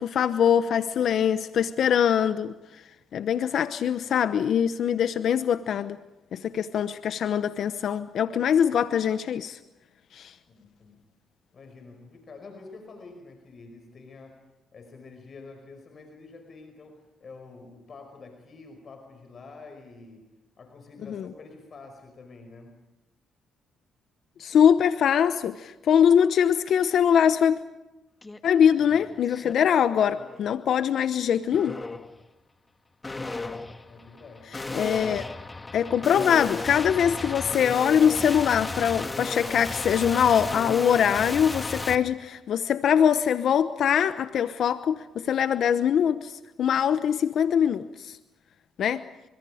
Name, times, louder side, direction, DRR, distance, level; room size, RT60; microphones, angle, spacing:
voice 1, 0.0-2.5 3.1-6.0 6.3-9.6 10.1-10.3 21.1-21.2 24.4-27.6 28.4-31.8 34.7-35.2 35.7-48.2 48.8-49.0, left 8 dB, 65° left, 0.9 m, -23 dB
voice 2, 10.5-11.0 11.5-14.4 14.7-20.3 20.6-22.8 33.9-34.6, left 3 dB, 45° left, 5.3 m, -47 dB
sound 1, 28.2-28.4 28.8-29.5 30.0-30.5 31.5-32.1 33.0-41.9, left 3 dB, 20° left, 2.0 m, -34 dB
29.0 x 25.5 x 5.1 m
cardioid pair, 90°, 0 cm